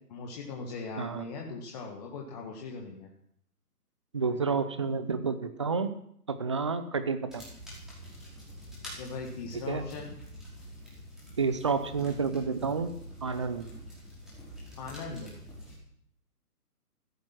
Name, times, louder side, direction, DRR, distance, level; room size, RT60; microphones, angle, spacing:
voice 1, 0.1-3.1 9.0-10.2 14.8-15.3, left 4 dB, 25° left, 0 dB, 1.8 m, -40 dB
voice 2, 4.1-5.9 6.3-7.4 9.7-9.8 11.4-12.9 13.2-13.7, right 5 dB, 20° right, 11 dB, 0.7 m, -30 dB
sound 1, 7.3-15.8, equal, ahead, 5.1 m, -46 dB
15.5 x 13.0 x 6.1 m, 0.70 s
figure-of-eight pair, 145°, 47 cm